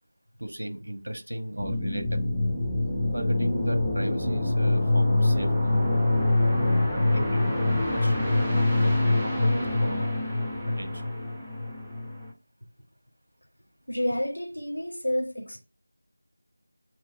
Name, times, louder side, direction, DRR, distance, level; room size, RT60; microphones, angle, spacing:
voice 1, 0.4-2.3 3.1-5.9 6.9-7.5 7.9-10.1 10.7-11.1, right 1 dB, 65° right, 1.4 m, -35 dB
sound 1, 1.6-12.3, left 2 dB, 5° right, 0.9 m, -25 dB
voice 2, 13.9-15.6, left 1 dB, 90° left, 2.4 m, -29 dB
7.9 x 3.1 x 4.8 m
figure-of-eight pair, 170°, 0 cm